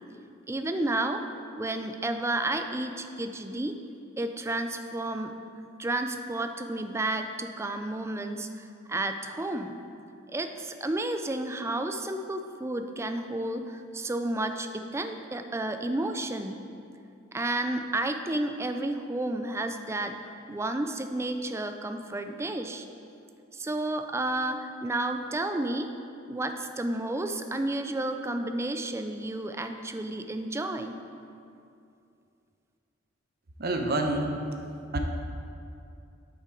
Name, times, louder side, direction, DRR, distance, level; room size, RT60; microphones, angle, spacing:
voice 1, 0.5-1.2 1.6-3.7 4.2-5.3 5.8-8.5 8.9-9.8 10.3-16.6 17.3-22.8 23.5-25.9 26.3-31.0, right 2 dB, 15° right, 7 dB, 0.4 m, -31 dB
voice 2, 33.6-34.3 34.9-35.0, right 2 dB, 55° right, 3 dB, 0.8 m, -27 dB
8.4 x 5.9 x 4.6 m, 2.5 s
head